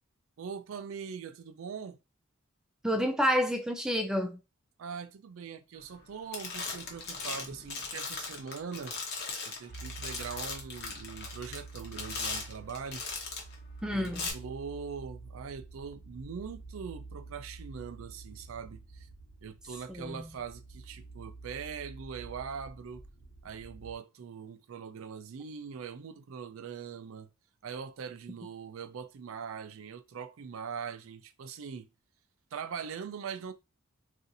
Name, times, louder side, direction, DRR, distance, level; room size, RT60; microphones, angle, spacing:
voice 1, 0.4-2.0 4.8-9.0 9.5-13.0 13.9-19.1 19.4-23.0 23.4-27.3 27.6-31.9 32.5-33.5, right 6 dB, 65° right, 0.4 m, -42 dB
voice 2, 2.8-4.4 13.8-14.3 19.9-20.3, equal, 5° right, 0.4 m, -29 dB
sound 1, 5.8-6.1 6.3-13.5 14.0-14.3, left 4 dB, 50° left, 0.9 m, -38 dB
sound 2, 9.7-24.0, right 3 dB, 85° left, 1.1 m, -48 dB
2.6 x 2.4 x 3.9 m
head